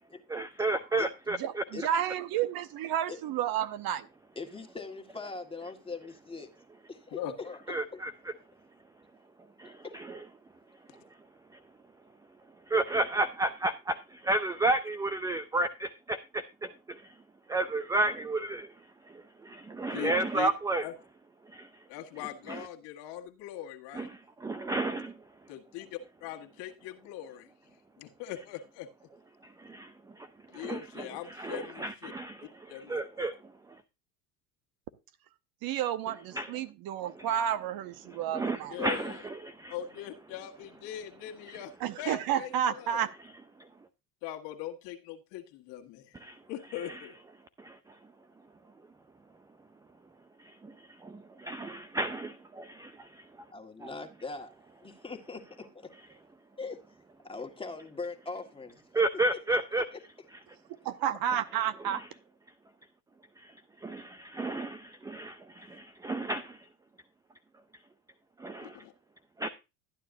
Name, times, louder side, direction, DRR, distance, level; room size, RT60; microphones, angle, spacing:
voice 1, 0.3-1.6 7.7-8.1 9.6-10.2 12.7-17.0 17.5-18.7 19.1-20.8 21.5-21.7 22.5-22.6 23.9-24.1 24.4-25.1 29.4-30.3 30.5-31.1 31.4-33.3 36.3-36.5 38.3-39.1 39.4-39.7 46.2-46.4 47.6-47.8 50.6-50.7 51.0-53.2 53.8-53.9 58.9-59.8 63.4-63.5 63.8-66.6 68.4-68.8 69.4-69.5, right 2 dB, 10° right, 0.4 m, -32 dB
voice 2, 1.4-4.1 35.6-38.8 41.8-43.1 60.8-62.0, right 10 dB, 50° right, 0.9 m, -31 dB
voice 3, 4.4-6.5 6.9-7.6 7.9-8.0 53.5-54.5 54.8-55.7 56.6-56.8 57.2-58.8 59.5-59.6, left 3 dB, 10° left, 1.8 m, -40 dB
voice 4, 7.1-7.5 19.9-20.5 20.8-20.9 21.9-24.1 25.5-27.5 28.0-28.9 30.5-32.1 32.4-33.3 38.7-39.2 39.7-43.0 44.2-46.1 46.5-47.2 68.6-68.9, left 11 dB, 60° left, 1.8 m, -41 dB
12.5 x 9.3 x 2.7 m
hypercardioid pair, 85°, 47 cm